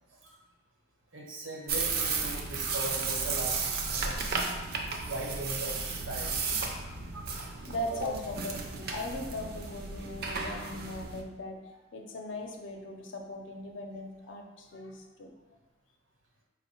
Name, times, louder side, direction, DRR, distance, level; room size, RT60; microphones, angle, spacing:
voice 1, 1.1-4.5 5.0-7.2 7.9-8.1, right 1 dB, 85° right, -2 dB, 0.9 m, -39 dB
sound 1, 1.7-11.2, right 4 dB, 50° right, 0.4 m, -34 dB
voice 2, 7.7-11.6 11.9-15.3, left 1 dB, 70° left, 3 dB, 0.5 m, -39 dB
4.3 x 2.1 x 4.2 m, 1.1 s
head